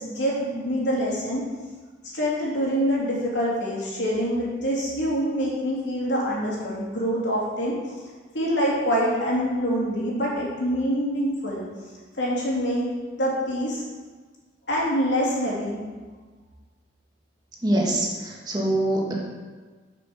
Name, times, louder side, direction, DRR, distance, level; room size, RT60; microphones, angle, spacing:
voice 1, 0.0-1.4 2.1-8.0 8.3-11.6 12.2-13.8 14.7-15.8, equal, 85° left, -5 dB, 3.2 m, -25 dB
voice 2, 17.6-19.1, right 1 dB, 25° right, -2 dB, 1.8 m, -24 dB
9.3 x 6.0 x 6.4 m, 1.4 s
head